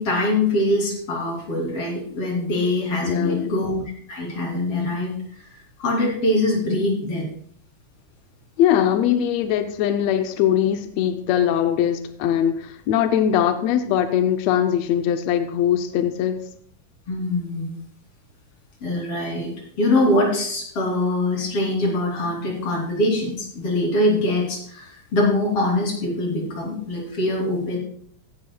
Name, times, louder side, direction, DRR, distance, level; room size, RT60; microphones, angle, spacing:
voice 1, 0.0-3.8 4.1-5.5 5.8-7.3 17.1-17.8 18.8-19.5 19.8-27.8, left 1 dB, 45° left, -2 dB, 4.0 m, -23 dB
voice 2, 3.0-3.5 8.6-16.4, left 10 dB, 80° left, 8 dB, 1.5 m, -21 dB
16.5 x 10.5 x 2.3 m, 0.63 s
omnidirectional pair, 3.8 m